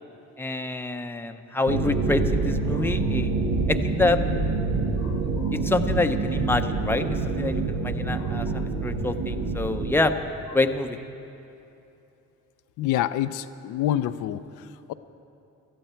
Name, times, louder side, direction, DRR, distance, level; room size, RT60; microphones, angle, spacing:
voice 1, 0.4-3.3 3.7-4.2 5.5-10.1 10.5-11.0, left 2 dB, 5° left, 7 dB, 0.7 m, -26 dB
sound 1, 1.7-10.0, right 3 dB, 75° right, 1.3 m, -26 dB
voice 2, 5.0-5.5 8.2-8.3 12.8-14.4 14.9-15.0, left 12 dB, 90° left, 11 dB, 0.5 m, -28 dB
18.0 x 13.5 x 4.5 m, 2.8 s
cardioid pair, 90°, 30 cm